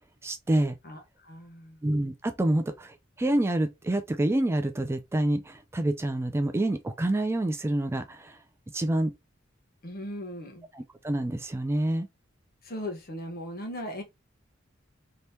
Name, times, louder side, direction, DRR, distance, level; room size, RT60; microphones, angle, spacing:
voice 1, 0.2-0.8 1.8-8.4 8.7-9.1 10.7-12.1, right 1 dB, 15° right, 0.3 m, -27 dB
voice 2, 0.8-1.8 9.8-10.7 12.6-14.0, equal, 50° left, 0.9 m, -38 dB
3.3 x 3.0 x 2.7 m
head